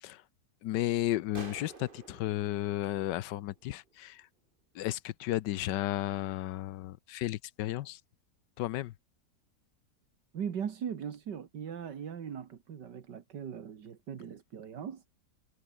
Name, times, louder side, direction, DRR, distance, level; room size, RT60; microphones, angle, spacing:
voice 1, 0.6-4.3 4.7-8.0 8.6-8.9, left 15 dB, 85° left, 1.3 m, -33 dB
sound 1, 1.3-3.9, right 4 dB, 30° right, 1.6 m, -50 dB
voice 2, 10.3-15.0, right 8 dB, 80° right, 2.2 m, -39 dB
omnidirectional pair, 1.8 m